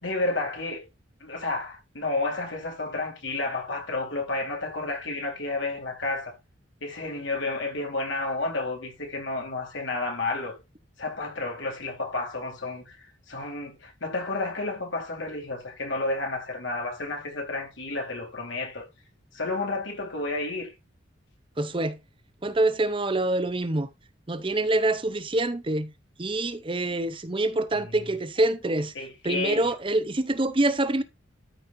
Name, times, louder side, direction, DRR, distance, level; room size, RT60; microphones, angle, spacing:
voice 1, 0.0-0.8 1.2-6.3 6.8-10.6 11.0-18.9 19.3-20.7 27.7-28.1 28.9-29.7, left 2 dB, 75° left, 4.3 m, -31 dB
voice 2, 21.6-22.0 22.4-23.9 24.3-25.9 26.2-28.9 29.2-31.0, right 2 dB, 25° right, 0.8 m, -25 dB
13.0 x 5.5 x 2.7 m
head